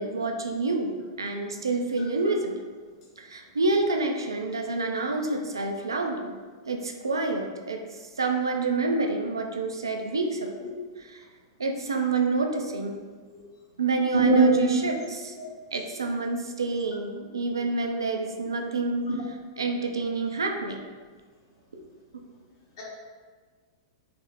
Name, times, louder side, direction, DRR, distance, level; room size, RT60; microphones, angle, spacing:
voice 1, 0.0-2.6 3.2-6.4 6.7-10.7 11.0-11.2 11.6-13.0 13.8-15.3 15.7-19.1 19.6-20.8 21.7-21.8, right 3 dB, 90° right, 4 dB, 0.4 m, -28 dB
voice 2, 14.1-14.8 19.1-19.2, right 2 dB, 60° left, -5 dB, 1.3 m, -20 dB
3.6 x 2.1 x 3.4 m, 1.5 s
hypercardioid pair, 105°, 2 cm